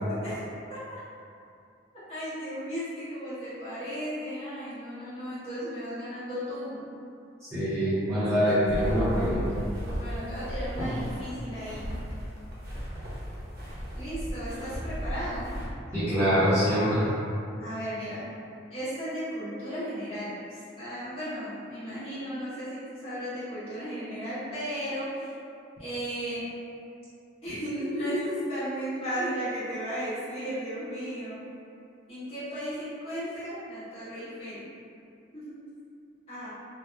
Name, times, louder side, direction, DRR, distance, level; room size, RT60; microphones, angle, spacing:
voice 1, 0.1-0.4 0.7-1.0 2.1-6.9 9.9-11.8 13.9-15.5 17.6-18.2 18.7-25.3 25.8-26.4 27.4-31.4 32.1-34.7 35.3-35.6 36.3-36.5, equal, 35° left, -15 dB, 1.2 m, -35 dB
voice 2, 7.4-9.5 10.8-10.9 15.9-17.1, equal, 15° right, -15 dB, 0.7 m, -24 dB
sound 1, 8.6-15.7, equal, 55° right, 0.7 m, -35 dB
2.8 x 2.1 x 2.2 m, 2.5 s
head